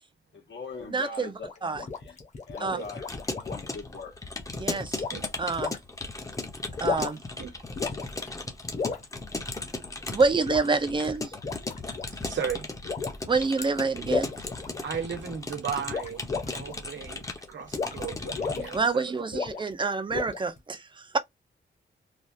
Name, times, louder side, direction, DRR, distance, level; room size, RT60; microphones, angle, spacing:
voice 1, 0.3-2.2 2.5-3.1 3.4-4.2, left 4 dB, 75° left, 1.1 m, -41 dB
voice 2, 0.9-1.3 1.6-1.9 2.6-2.8 4.6-5.0 5.4-5.7 6.8-7.2 10.1-11.3 13.3-14.3 18.7-21.2, right 4 dB, 25° right, 0.4 m, -27 dB
sound 1, 1.4-3.7 5.0-5.2 5.6-5.8 6.7-7.3 7.8-8.3 8.7-9.1 10.4-10.7 11.3-12.1 12.8-13.2 14.1-15.2 15.9-16.7 17.7-18.0 18.2-18.7 19.3-19.7 20.1-20.6, left 5 dB, 40° left, 0.9 m, -33 dB
Keyboard (musical) / Computer keyboard, 2.8-18.9, left 3 dB, 15° left, 0.6 m, -37 dB
voice 3, 12.2-12.7 14.8-19.4, right 7 dB, 80° right, 1.0 m, -36 dB
3.2 x 2.3 x 2.6 m
wide cardioid pair, 170°, 19 cm